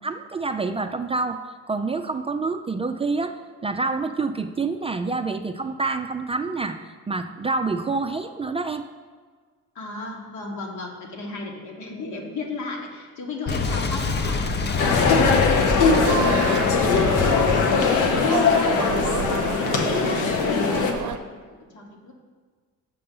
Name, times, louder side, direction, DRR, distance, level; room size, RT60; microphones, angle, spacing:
voice 1, 0.0-1.4 1.7-3.4 3.6-6.8 7.1-8.8, right 3 dB, 20° right, 7 dB, 0.3 m, -27 dB
voice 2, 9.7-14.5 14.9-16.3 16.7-20.2 21.0-22.1, left 3 dB, 75° left, 0 dB, 1.5 m, -35 dB
Boom, 13.5-19.0, left 4 dB, 35° left, 0.6 m, -26 dB
sound 1, 14.8-20.9, left 5 dB, 90° left, 0.9 m, -20 dB
sound 2, 15.9-21.2, right 8 dB, 75° right, 0.6 m, -30 dB
6.8 x 5.4 x 5.4 m, 1.5 s
cardioid pair, 90°, 30 cm